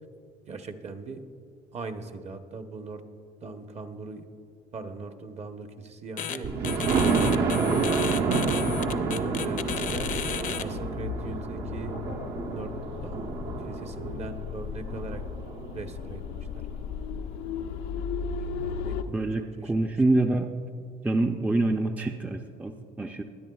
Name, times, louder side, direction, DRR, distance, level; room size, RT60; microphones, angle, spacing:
voice 1, 0.5-1.2 1.7-3.0 3.4-4.3 4.7-7.1 9.0-10.1 10.6-11.9 12.5-12.7 13.0-15.2 15.7-16.6 18.6-20.0, right 3 dB, 40° right, 7 dB, 0.9 m, -40 dB
sound 1, 6.2-6.4 6.6-10.6, left 8 dB, 50° left, 0.6 m, -33 dB
Thunder, 6.4-16.2 16.7-16.8 17.2-17.3 17.6-17.7, right 4 dB, 70° right, 1.1 m, -29 dB
sound 2, 9.7-19.0, left 6 dB, 90° left, 0.6 m, -36 dB
voice 2, 19.7-20.5 21.0-23.2, right 2 dB, 10° right, 4 dB, 0.4 m, -26 dB
22.0 x 10.0 x 2.3 m, 2.3 s
cardioid pair, 110°, 17 cm